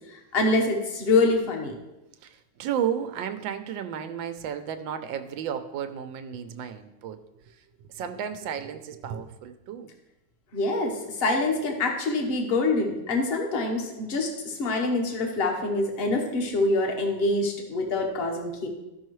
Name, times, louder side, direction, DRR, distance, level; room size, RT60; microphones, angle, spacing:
voice 1, 0.1-1.7 10.5-18.7, left 2 dB, 40° left, 2 dB, 1.2 m, -25 dB
voice 2, 2.2-9.9, right 8 dB, 90° right, 8 dB, 1.3 m, -33 dB
13.5 x 5.5 x 3.1 m, 0.97 s
omnidirectional pair, 2.0 m